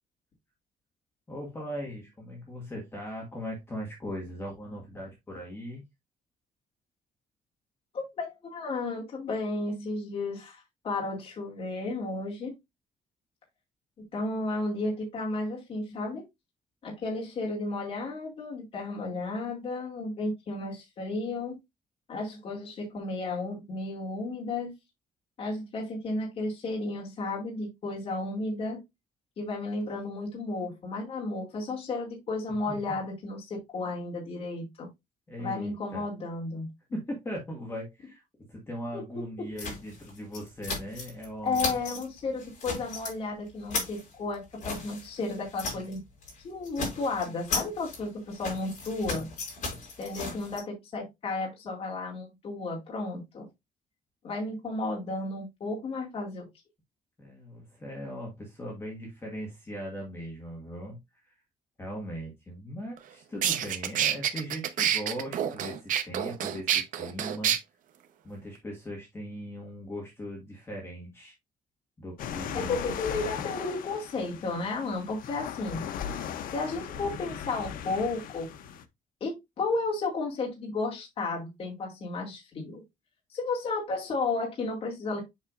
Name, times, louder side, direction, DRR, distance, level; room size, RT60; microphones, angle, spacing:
voice 1, 1.3-5.8 32.7-32.8 35.3-36.0 36.9-38.2 38.5-41.6 57.2-61.3 61.8-67.5 68.2-71.3 72.0-72.8, equal, 15° left, -1 dB, 1.6 m, -39 dB
voice 2, 7.9-12.5 14.1-16.2 16.8-21.6 22.1-24.7 25.4-28.8 29.4-34.9 35.4-36.7 38.9-39.3 41.4-46.0 46.4-49.3 50.0-53.5 54.2-56.5 72.5-75.9 76.5-78.5 79.2-82.8 83.3-85.2, left 3 dB, 45° left, -3 dB, 2.2 m, -33 dB
sound 1, 39.6-41.3 41.5-42.1 42.4-43.1 43.5-46.0 46.2-46.4 46.6-50.6, left 4 dB, 60° left, 4.3 m, -36 dB
sound 2, 63.0-63.1 63.4-67.6, right 10 dB, 70° right, 0.8 m, -27 dB
sound 3, 72.2-78.8, left 8 dB, 85° left, 0.7 m, -38 dB
7.3 x 5.8 x 2.5 m, 0.20 s
cardioid pair, 175°, 14 cm